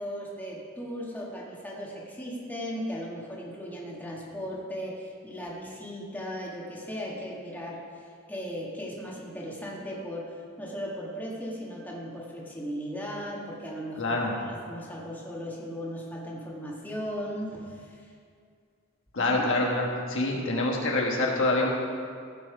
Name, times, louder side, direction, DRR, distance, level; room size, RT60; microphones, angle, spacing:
voice 1, 0.0-7.8 8.3-10.3 10.6-14.2 14.5-18.0 19.2-19.4 20.3-20.5, equal, 10° left, -4 dB, 1.7 m, -37 dB
voice 2, 14.0-14.4 19.1-21.7, left 2 dB, 65° left, -1 dB, 1.4 m, -26 dB
15.5 x 5.8 x 5.0 m, 2.2 s
head